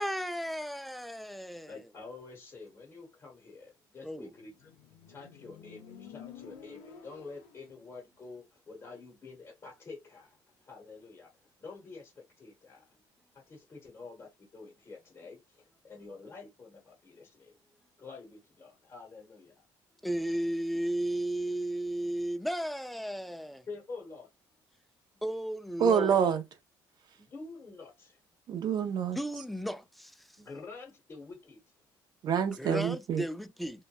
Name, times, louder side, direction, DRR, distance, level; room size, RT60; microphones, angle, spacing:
voice 1, 0.0-1.8 4.0-4.3 20.0-23.6 25.2-26.1 29.2-30.1 32.6-33.8, right 1 dB, ahead, 0.3 m, -34 dB
voice 2, 1.7-4.7 5.1-13.0 13.3-17.5 18.0-19.6 23.7-24.3 27.1-28.2 30.4-31.6, left 4 dB, 35° left, 0.8 m, -48 dB
Motorcycle, 4.4-7.9, left 7 dB, 85° left, 0.6 m, -51 dB
voice 3, 25.8-26.4 28.5-29.2 32.2-33.2, right 7 dB, 55° right, 0.5 m, -27 dB
2.8 x 2.1 x 2.2 m
cardioid pair, 90°, 9 cm